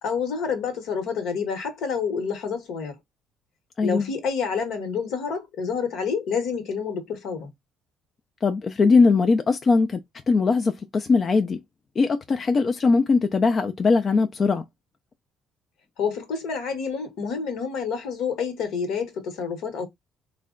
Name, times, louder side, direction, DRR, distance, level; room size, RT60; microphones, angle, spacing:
voice 1, 0.0-2.9 3.8-7.5 16.0-19.9, left 6 dB, 75° left, 1.1 m, -28 dB
voice 2, 3.8-4.1 8.4-10.0 10.3-11.6 12.0-14.6, left 4 dB, 40° left, 0.4 m, -20 dB
3.3 x 2.1 x 3.7 m
supercardioid pair, 75°, 0 cm